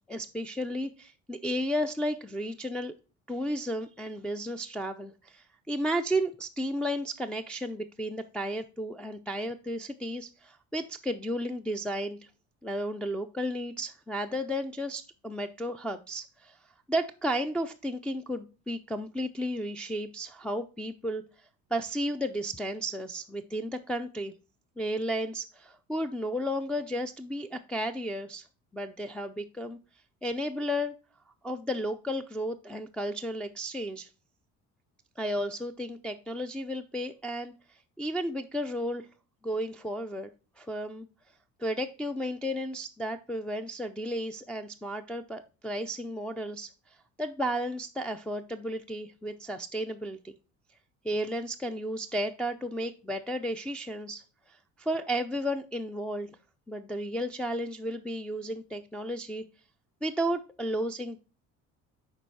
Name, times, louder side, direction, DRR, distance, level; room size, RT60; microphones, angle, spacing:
voice 1, 0.1-2.9 3.3-12.2 12.6-16.6 16.9-21.2 21.7-24.3 24.8-28.4 28.7-29.8 30.2-30.9 31.4-34.1 35.2-37.5 38.0-39.1 39.4-40.3 40.6-41.1 41.6-46.7 47.2-50.4 51.0-54.2 54.8-56.4 56.7-59.4 60.0-61.2, equal, 5° left, 2 dB, 0.4 m, -33 dB
6.7 x 4.5 x 4.6 m, 0.34 s
supercardioid pair, 90°, 32 cm